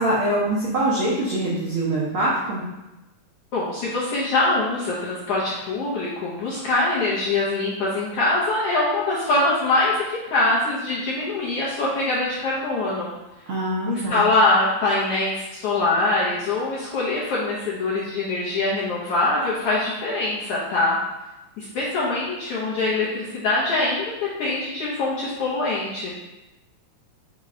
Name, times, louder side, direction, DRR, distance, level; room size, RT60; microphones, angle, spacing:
voice 1, 0.0-2.6 13.5-14.2, right 1 dB, 75° right, -6 dB, 1.2 m, -23 dB
voice 2, 3.5-13.1 13.8-21.0 21.6-26.1, left 2 dB, 75° left, -6 dB, 1.4 m, -23 dB
5.0 x 2.2 x 4.8 m, 1.0 s
omnidirectional pair, 3.4 m